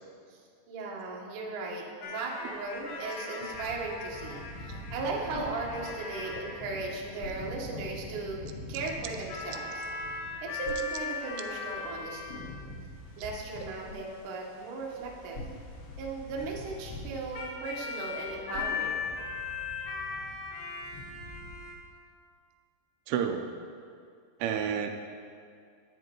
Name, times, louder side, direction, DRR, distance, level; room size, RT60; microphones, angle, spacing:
voice 1, 0.7-8.4 8.7-9.9 10.4-12.5 13.2-15.4 16.0-19.1, right 3 dB, 65° right, -3 dB, 2.1 m, -37 dB
sound 1, 2.0-21.8, left 4 dB, 75° left, 3.2 m, -39 dB
sound 2, 4.6-19.6, left 1 dB, 35° left, 2.1 m, -50 dB
voice 2, 23.1-23.5 24.4-24.9, right 8 dB, 85° right, 5 dB, 3.1 m, -29 dB
12.5 x 9.0 x 3.1 m, 2.3 s
omnidirectional pair, 5.4 m